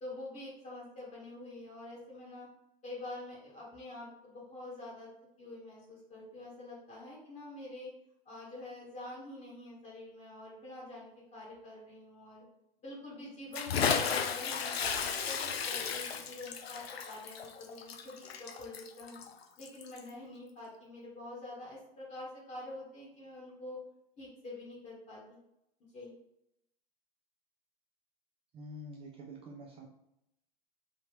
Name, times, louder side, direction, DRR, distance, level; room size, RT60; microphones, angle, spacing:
voice 1, 0.0-2.5 2.8-5.1 5.4-7.9 8.2-12.4 12.8-19.2 19.6-23.8 24.2-25.4 25.9-26.1, left 2 dB, 25° left, -5 dB, 1.1 m, -46 dB
Bathtub (filling or washing) / Splash splatter, 13.5-20.1, left 6 dB, 85° left, 0.5 m, -34 dB
voice 2, 28.5-29.9, equal, 20° right, -1 dB, 0.4 m, -47 dB
3.5 x 2.8 x 2.9 m, 0.82 s
hypercardioid pair, 100°, 30 cm